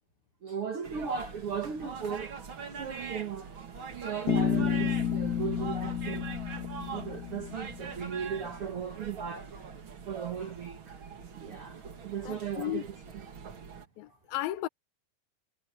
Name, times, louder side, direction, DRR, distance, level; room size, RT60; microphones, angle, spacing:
voice 1, 0.4-2.3 2.8-3.5 3.9-6.3 6.7-9.5 10.1-11.0 11.3-13.2 14.1-14.2, right 7 dB, 75° right, 1.2 m, -37 dB
sound 1, 0.8-13.9, right 6 dB, 40° right, 2.0 m, -43 dB
Bass guitar, 4.3-8.2, left 7 dB, 35° left, 1.7 m, -31 dB
voice 2, 12.3-12.8 14.0-14.7, left 15 dB, 75° left, 2.4 m, -34 dB
omnidirectional pair, 4.7 m